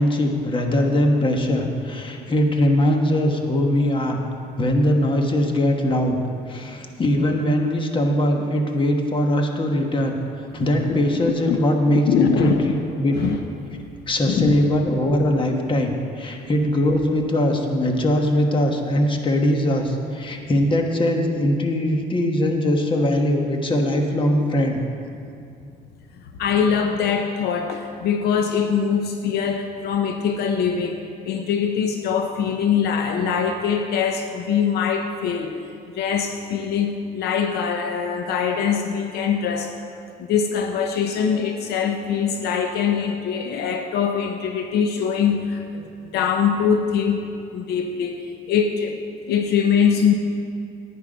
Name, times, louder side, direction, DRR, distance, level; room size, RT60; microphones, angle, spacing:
voice 1, 0.0-4.2 4.6-6.2 6.5-10.2 10.5-13.1 14.1-24.8, left 1 dB, 30° left, 3 dB, 1.3 m, -21 dB
voice 2, 10.8-11.6 11.9-12.7 13.1-13.4 14.3-14.6 26.4-35.6 35.9-39.7 40.2-45.8 46.1-47.2 47.5-49.0 49.3-50.1, left 7 dB, 70° left, 5 dB, 0.7 m, -23 dB
11.0 x 9.5 x 5.2 m, 2.4 s
cardioid pair, 110°, 17 cm